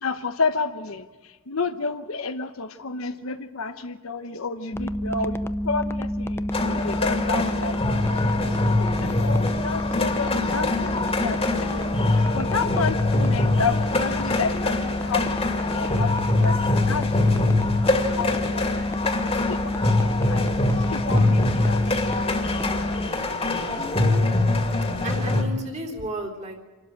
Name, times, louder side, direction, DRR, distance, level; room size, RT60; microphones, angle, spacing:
voice 1, 0.0-5.4 5.6-11.8 12.1-17.5 17.9-18.9 19.4-23.1, left 4 dB, 90° left, 7 dB, 1.0 m, -31 dB
sound 1, 4.7-23.1, left 1 dB, 10° left, 0.6 m, -29 dB
sound 2, 6.5-25.4, left 2 dB, 30° left, 2.4 m, -24 dB
voice 2, 23.8-24.2 25.0-26.6, right 1 dB, 35° right, 2 dB, 3.6 m, -33 dB
26.5 x 12.5 x 8.9 m, 1.3 s
head